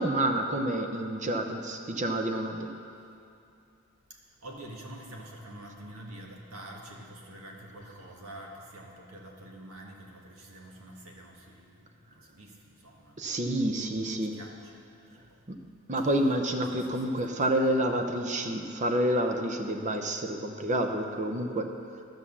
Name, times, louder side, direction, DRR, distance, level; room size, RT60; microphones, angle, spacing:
voice 1, 0.0-2.7 13.2-14.4 15.5-15.6 15.9-21.7, right 1 dB, 35° right, 5 dB, 0.6 m, -28 dB
voice 2, 4.1-13.6 13.9-14.1 14.3-15.4 16.0-16.1 16.7-16.8 17.2-17.8, right 1 dB, 80° right, -1 dB, 1.6 m, -47 dB
12.0 x 6.2 x 7.1 m, 2.6 s
head